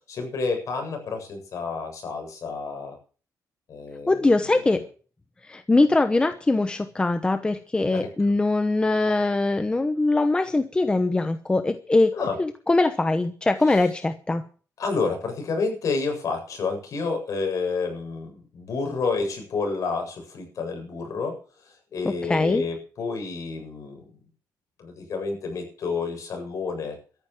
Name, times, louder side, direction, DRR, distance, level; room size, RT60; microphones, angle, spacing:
voice 1, 0.1-3.0 3.7-4.8 7.9-8.1 12.1-12.4 13.6-13.8 14.8-21.4 21.6-24.1 24.8-27.0, left 4 dB, 50° left, 4 dB, 7.7 m, -29 dB
voice 2, 4.1-4.8 5.4-14.4 22.0-22.6, left 2 dB, 15° left, 9 dB, 0.9 m, -22 dB
14.0 x 10.5 x 7.6 m, 0.40 s
cardioid pair, 155°, 7 cm